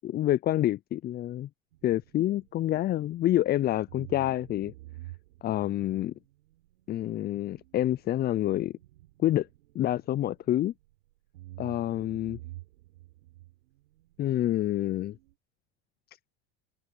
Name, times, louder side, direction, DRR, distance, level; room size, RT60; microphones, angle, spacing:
voice 1, 0.0-1.5 1.8-4.7 5.4-6.1 6.9-8.7 9.2-9.5 9.7-10.7 11.6-12.4 14.2-15.1, left 13 dB, 30° left, 0.4 m, -27 dB
sound 1, 1.7-3.5 3.9-10.9 11.3-15.3, right 17 dB, 85° right, 4.1 m, -50 dB
supercardioid pair, 95°, 32 cm